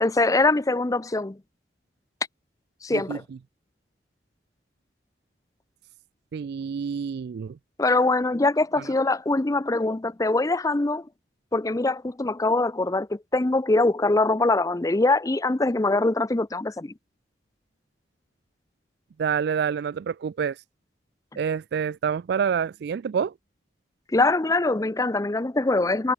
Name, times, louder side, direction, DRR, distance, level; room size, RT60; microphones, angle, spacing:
voice 1, 0.0-1.4 2.8-3.2 7.8-11.0 11.5-16.9 24.1-26.1, left 2 dB, 20° left, 0.5 m, -23 dB
voice 2, 6.3-7.6 19.2-20.6 21.4-23.3, right 7 dB, 60° right, 0.3 m, -27 dB
head